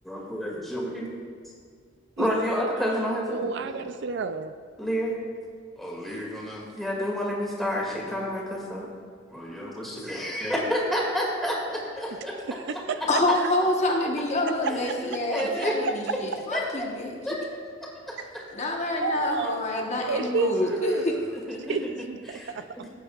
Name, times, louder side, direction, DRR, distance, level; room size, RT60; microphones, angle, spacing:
voice 1, 0.0-1.2 2.2-3.9 4.8-5.2 5.8-8.9 9.3-12.6 12.9-13.1 14.6-15.8 16.5-16.6 17.3-17.6 18.1-18.4 19.2-21.0 21.5-21.8 22.3-22.9, equal, ahead, -4 dB, 2.1 m, -31 dB
voice 2, 3.3-4.5 12.9-13.0 13.4-13.5 14.6-14.7 15.8-15.9 19.0-19.6 20.1-21.0 21.7-22.6, right 4 dB, 60° right, 10 dB, 0.4 m, -30 dB
voice 3, 13.1-17.1 18.5-21.1 21.4-21.5, left 2 dB, 35° left, 0 dB, 1.1 m, -27 dB
16.5 x 8.1 x 2.4 m, 2.2 s
head